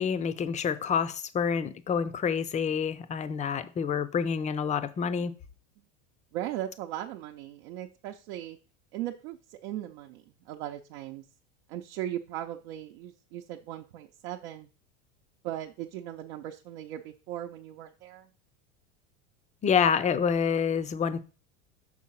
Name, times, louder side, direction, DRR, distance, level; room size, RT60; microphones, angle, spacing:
voice 1, 0.0-5.3 19.6-21.2, left 7 dB, 20° left, 0.5 m, -27 dB
voice 2, 6.3-8.6 8.9-11.2 11.7-14.7 15.4-18.3, right 12 dB, 75° right, 0.8 m, -38 dB
6.3 x 3.8 x 5.7 m
supercardioid pair, 115°, 38 cm